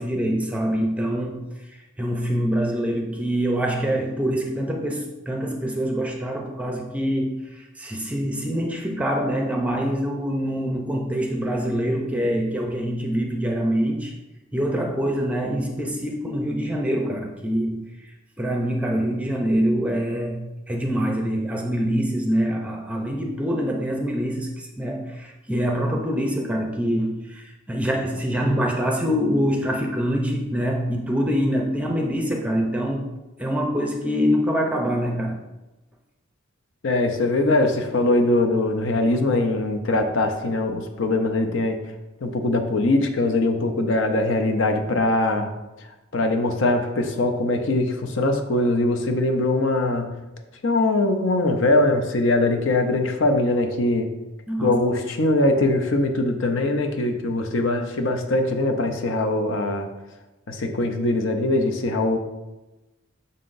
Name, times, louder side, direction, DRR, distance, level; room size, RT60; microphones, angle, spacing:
voice 1, 0.0-14.1 14.5-33.1 33.4-35.4 54.5-54.8, equal, 5° right, 1 dB, 0.5 m, -25 dB
voice 2, 36.8-41.8 42.2-45.5 46.1-50.1 50.6-54.1 54.6-59.9 60.5-62.2, left 2 dB, 60° left, 5 dB, 0.6 m, -22 dB
6.5 x 5.7 x 2.6 m, 1.1 s
head